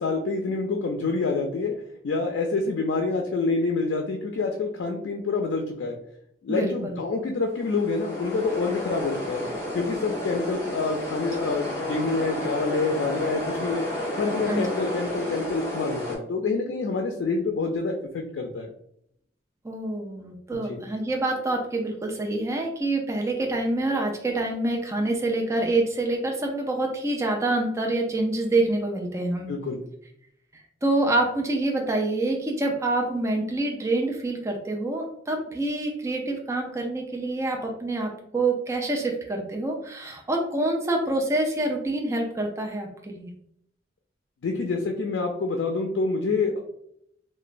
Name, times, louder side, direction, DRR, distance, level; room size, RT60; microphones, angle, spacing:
voice 1, 0.0-1.7 2.0-6.0 6.4-9.4 9.7-13.8 14.2-18.7 20.5-20.8 29.5-29.8 44.4-46.6, left 3 dB, 80° left, 2 dB, 0.4 m, -27 dB
voice 2, 6.5-7.0 14.5-14.7 19.6-29.5 30.8-43.3, right 2 dB, 15° right, 1 dB, 0.3 m, -26 dB
sound 1, 7.5-16.2, left 1 dB, 25° left, 1.0 m, -32 dB
2.9 x 2.1 x 2.4 m, 0.71 s
head